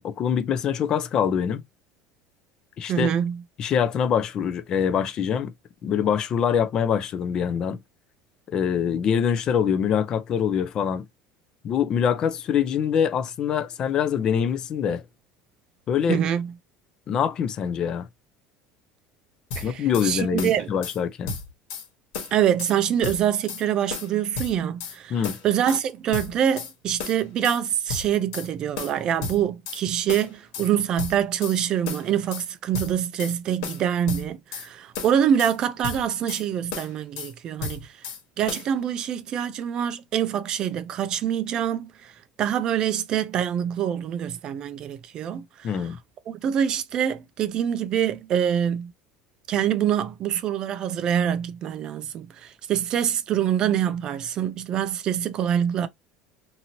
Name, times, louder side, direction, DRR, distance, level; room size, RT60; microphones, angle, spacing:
voice 1, 0.0-1.6 2.8-3.1 3.6-5.5 5.8-7.8 8.5-11.1 11.6-15.0 15.9-16.2 17.1-18.1 19.6-21.4 25.1-25.4 45.6-46.0, left 8 dB, 35° left, 0.4 m, -24 dB
voice 2, 2.9-3.4 16.1-16.5 19.6-20.7 22.3-37.9 38.4-42.1 42.4-45.7 46.3-48.9 49.5-55.9, right 9 dB, 35° right, 0.4 m, -25 dB
sound 1, 19.5-20.1 20.4-21.0 21.3-21.9 22.1-22.8 23.0-23.6 23.9-25.0 25.2-25.8 26.1-26.7 27.0-27.6 27.9-28.5 28.8-29.8 30.1-30.7 31.0-31.6 31.9-32.5 32.7-33.4 33.6-34.7 34.9-35.6 35.8-36.4 36.7-37.3 37.6-38.2 38.5-38.7, left 4 dB, 80° left, 1.3 m, -33 dB
2.9 x 2.6 x 2.7 m
cardioid pair, 160°, 2 cm